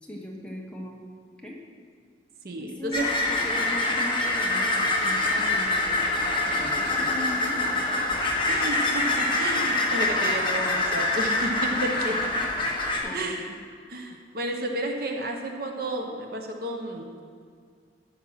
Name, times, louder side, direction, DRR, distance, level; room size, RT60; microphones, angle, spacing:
voice 1, 0.0-1.0 1.4-1.6 2.6-6.0 6.5-7.8 11.7-12.4 13.0-13.4, left 1 dB, 5° left, -2 dB, 1.2 m, -37 dB
voice 2, 2.4-3.0 6.8-6.9 8.5-12.1 13.1-13.4 13.9-17.2, right 1 dB, 60° right, 2 dB, 1.0 m, -32 dB
sound 1, 2.9-13.0, left 2 dB, 30° left, 1.3 m, -25 dB
12.5 x 5.5 x 5.7 m, 2.1 s
head